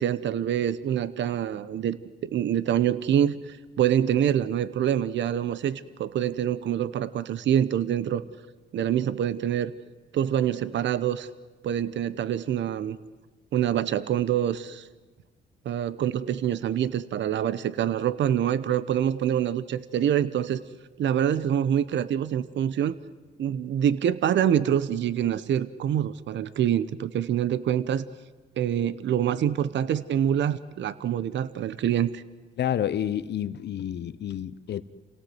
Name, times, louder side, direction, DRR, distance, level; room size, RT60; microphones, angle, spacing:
voice 1, 0.0-2.0 2.2-8.2 8.7-9.7 10.1-11.3 11.6-13.0 13.5-14.8 15.6-20.6 21.0-22.9 23.4-28.0 28.6-32.2, right 10 dB, 65° right, 1.0 m, -25 dB
voice 2, 32.6-34.8, left 10 dB, 60° left, 0.9 m, -29 dB
28.5 x 17.5 x 8.0 m
cardioid pair, 90°, 20 cm